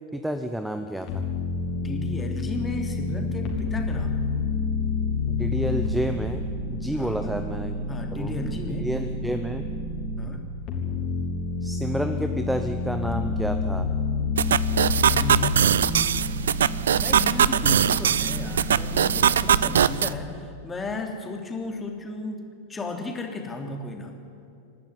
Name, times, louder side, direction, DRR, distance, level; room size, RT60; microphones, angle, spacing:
voice 1, 0.1-1.2 5.3-6.4 6.7-7.7 8.1-9.7 11.6-13.9, right 1 dB, ahead, 8 dB, 0.9 m, -30 dB
sound 1, 1.1-10.3 10.7-19.9, left 3 dB, 40° left, 3.8 m, -29 dB
voice 2, 1.7-4.1 6.9-7.3 7.9-8.9 10.2-10.4 15.1-16.2 17.0-22.4 22.7-24.1, left 2 dB, 15° left, 3 dB, 3.1 m, -34 dB
sound 2, 14.4-20.1, right 9 dB, 65° right, 0.5 m, -21 dB
27.0 x 12.0 x 9.7 m, 2.5 s
figure-of-eight pair, 90°, 0 cm